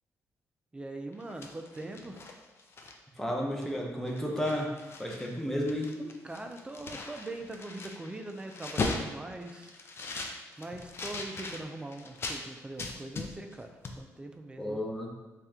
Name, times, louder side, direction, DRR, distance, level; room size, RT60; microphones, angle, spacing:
voice 1, 0.7-2.2 6.2-9.7 10.6-13.7 14.0-14.8, right 2 dB, 15° right, 5 dB, 0.4 m, -41 dB
sound 1, 1.1-3.2 3.6-3.8 4.1-5.3 5.6-12.4 12.8-13.6 13.8-14.0, left 3 dB, 45° left, 0.5 m, -39 dB
voice 2, 3.2-4.7 5.0-6.1 14.6-15.1, equal, 5° left, -1 dB, 0.8 m, -32 dB
3.3 x 2.9 x 3.7 m, 1.2 s
cardioid pair, 90°, 6 cm